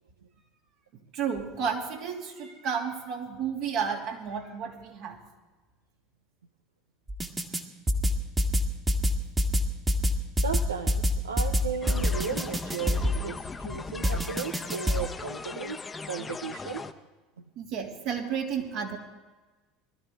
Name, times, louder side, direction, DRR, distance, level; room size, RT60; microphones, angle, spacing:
voice 1, 1.1-5.2 12.2-12.3 17.6-19.0, right 7 dB, 60° right, -1 dB, 3.0 m, -32 dB
sound 1, 7.1-7.6 7.9-13.2 14.0-15.0, left 1 dB, 20° right, 1.7 m, -25 dB
voice 2, 10.4-15.8 16.1-16.8 17.4-17.5, right 6 dB, 90° right, 7 dB, 0.7 m, -35 dB
sound 2, 11.8-16.9, left 4 dB, 20° left, 0.9 m, -39 dB
21.0 x 13.0 x 3.5 m, 1.3 s
hypercardioid pair, 80°, 0 cm